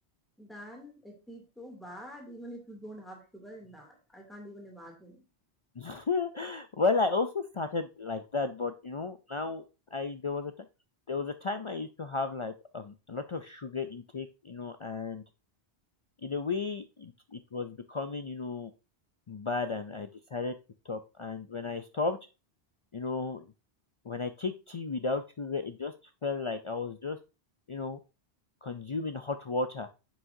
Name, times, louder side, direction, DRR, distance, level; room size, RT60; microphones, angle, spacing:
voice 1, 0.4-5.2, equal, ahead, 0 dB, 2.6 m, -46 dB
voice 2, 5.8-9.6 9.9-10.5 11.1-15.2 16.2-18.7 19.3-20.5 20.9-22.2 22.9-23.5 24.0-25.9 26.2-27.2 27.7-28.0 28.6-29.9, left 4 dB, 50° left, 9 dB, 0.3 m, -33 dB
9.5 x 6.1 x 2.7 m, 0.31 s
omnidirectional pair, 1.1 m